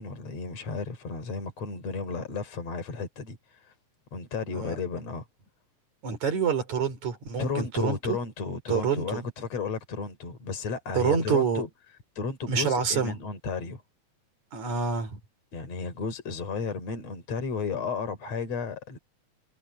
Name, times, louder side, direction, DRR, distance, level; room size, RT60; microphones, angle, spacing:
voice 1, 0.0-3.7 4.1-5.3 7.4-11.7 12.2-13.8 15.5-19.0, left 4 dB, 60° left, 5.2 m, -33 dB
voice 2, 6.0-8.2 8.7-9.2 11.0-11.6 12.5-13.1 14.5-15.2, right 6 dB, 70° right, 5.4 m, -27 dB
omnidirectional pair, 3.4 m